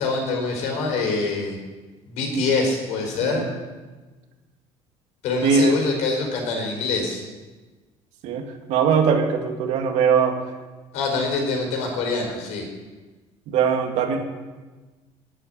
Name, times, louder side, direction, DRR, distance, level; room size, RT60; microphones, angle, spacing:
voice 1, 0.0-1.6 2.1-3.5 5.2-7.2 10.9-12.6, left 3 dB, 75° left, 1 dB, 4.4 m, -25 dB
voice 2, 5.4-5.7 8.2-10.4 13.5-14.2, right 6 dB, 75° right, 3 dB, 2.1 m, -21 dB
11.0 x 8.1 x 9.1 m, 1.3 s
cardioid pair, 130°, 12 cm